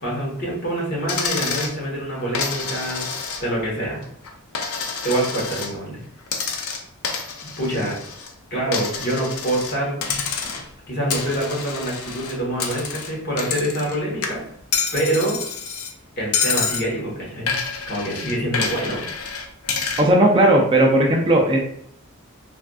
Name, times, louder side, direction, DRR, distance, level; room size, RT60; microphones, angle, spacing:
voice 1, 0.0-3.1 3.4-4.0 5.0-6.0 7.6-7.9 8.5-9.9 10.4-10.5 10.9-14.4 14.9-15.4 16.2-17.6 17.9-19.0, right 1 dB, 50° left, -4 dB, 1.2 m, -25 dB
Coin (dropping), 1.1-1.8 2.3-3.7 4.0-5.7 6.3-8.3 8.7-9.8 10.0-10.7 11.1-14.0 14.2-15.9 16.3-16.9 17.5-20.1, left 5 dB, 85° left, 0.5 m, -28 dB
voice 2, 20.0-21.6, right 1 dB, 25° right, -1 dB, 0.4 m, -16 dB
3.4 x 2.5 x 2.3 m, 0.68 s
head